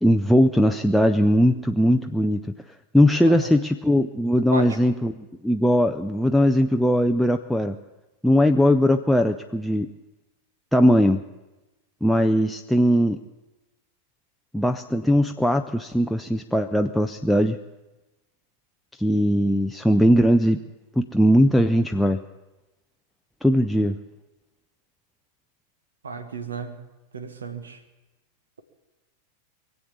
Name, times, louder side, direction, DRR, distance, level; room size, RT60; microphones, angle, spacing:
voice 1, 0.0-2.4 2.9-7.8 8.2-9.9 10.7-11.2 12.0-13.2 14.5-17.6 19.0-20.7 21.0-22.2 23.4-23.9, equal, ahead, 4 dB, 0.5 m, -19 dB
voice 2, 26.0-26.8 27.1-27.8, right 4 dB, 70° right, 11 dB, 1.3 m, -33 dB
23.5 x 8.1 x 7.1 m, 1.1 s
figure-of-eight pair, 90°, 0 cm